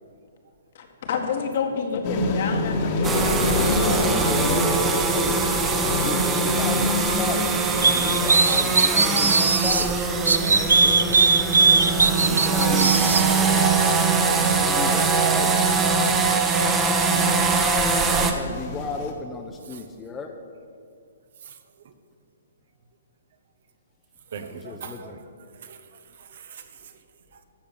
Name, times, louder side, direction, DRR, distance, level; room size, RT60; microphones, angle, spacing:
voice 1, 0.8-4.2 12.2-12.9, left 6 dB, 55° left, 3 dB, 1.8 m, -30 dB
sound 1, 2.0-19.1, left 2 dB, 40° left, 1.7 m, -29 dB
sound 2, 3.0-18.3, right 4 dB, 15° right, 1.1 m, -22 dB
voice 2, 3.6-5.4 6.0-7.5 7.8-10.0 10.6-11.2 12.3-12.9 14.4-15.6 17.9-20.3 24.5-25.2, left 4 dB, 15° left, 2 dB, 0.8 m, -35 dB
voice 3, 7.6-8.1 8.3-8.5 10.3-10.4 19.6-19.8 21.4-21.6 21.8-21.9 24.3-25.2 25.5-26.9 27.3-27.4, right 6 dB, 60° right, 8 dB, 1.1 m, -41 dB
sound 3, 7.8-9.9 10.3-13.2, right 4 dB, 90° right, 0.7 m, -19 dB
13.0 x 5.1 x 8.7 m, 2.2 s
hypercardioid pair, 135°, 0 cm